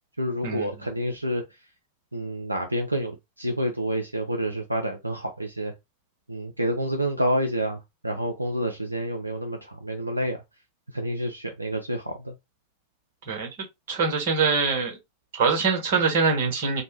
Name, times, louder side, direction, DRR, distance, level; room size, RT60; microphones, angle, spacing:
voice 1, 0.2-1.4 2.1-5.7 6.3-10.4 10.9-12.3, equal, 85° right, 0.4 m, -28 dB
voice 2, 13.9-15.0 15.3-16.8, right 4 dB, 50° right, 1.0 m, -23 dB
2.6 x 2.1 x 3.1 m
figure-of-eight pair, 90°, 0 cm